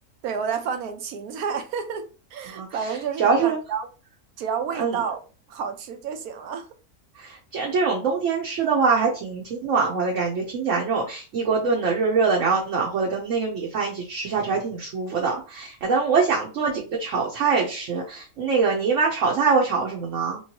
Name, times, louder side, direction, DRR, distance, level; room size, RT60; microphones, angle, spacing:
voice 1, 0.2-3.9 4.4-5.2 5.5-6.7, right 6 dB, 80° right, 1.1 m, -30 dB
voice 2, 3.2-3.6 4.8-4.9 7.2-20.4, right 5 dB, 60° right, 1.1 m, -23 dB
3.1 x 3.0 x 2.9 m
omnidirectional pair, 1.6 m